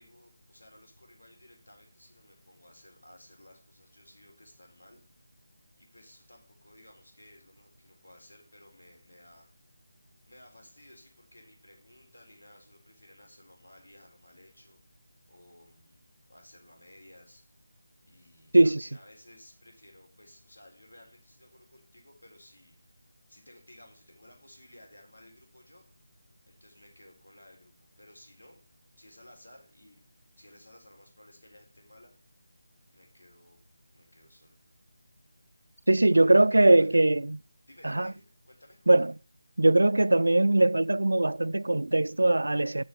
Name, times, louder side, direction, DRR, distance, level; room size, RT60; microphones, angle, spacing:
voice 1, 0.0-5.0 5.8-9.5 10.2-14.8 15.3-16.0 16.3-17.4 18.1-23.0 23.3-25.8 26.5-28.6 29.0-30.0 30.4-32.1 32.9-33.6 33.9-34.6 36.1-37.0 37.7-39.1, left 1 dB, 80° left, 3.9 m, -56 dB
voice 2, 35.9-37.4 37.8-38.1 38.9-39.1 39.6-42.8, right 2 dB, 70° right, 0.3 m, -21 dB
6.8 x 6.5 x 7.0 m
figure-of-eight pair, 160°, 0 cm